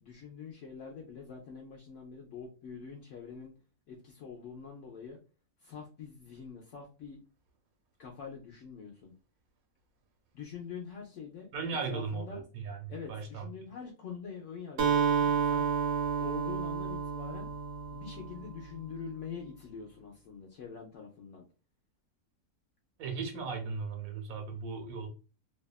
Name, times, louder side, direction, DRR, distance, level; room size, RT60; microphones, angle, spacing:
voice 1, 0.0-3.5 3.9-5.2 5.6-7.2 8.0-9.1 10.3-11.5 11.9-12.4 12.9-15.7 16.2-17.5 17.9-21.4, left 6 dB, 70° left, 0 dB, 0.8 m, -45 dB
voice 2, 11.5-13.5 23.0-25.1, right 5 dB, 80° right, 4 dB, 1.1 m, -37 dB
Acoustic guitar, 14.8-18.6, right 6 dB, 60° right, 0.7 m, -30 dB
2.7 x 2.2 x 2.3 m, 0.33 s
omnidirectional pair, 1.5 m